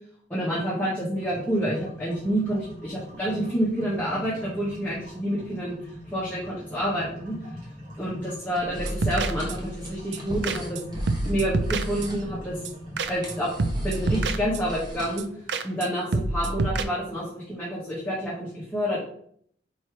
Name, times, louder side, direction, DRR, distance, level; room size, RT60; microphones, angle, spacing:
voice 1, 0.3-5.7 6.1-7.3 8.0-10.8 11.2-12.6 13.1-13.5 13.8-15.3 15.6-19.0, equal, 10° left, -8 dB, 1.6 m, -28 dB
sound 1, 1.1-17.0, equal, 45° right, 2.6 m, -42 dB
sound 2, 8.5-15.2, equal, 25° right, 1.4 m, -41 dB
sound 3, 8.8-9.8 10.1-10.2 10.4-10.8 11.1-12.3 12.7-12.8 13.0-13.3 13.6-14.8 15.2-15.3 15.5-15.9 16.1-16.8, right 2 dB, 80° right, 0.5 m, -28 dB
4.5 x 4.4 x 4.9 m, 0.63 s
head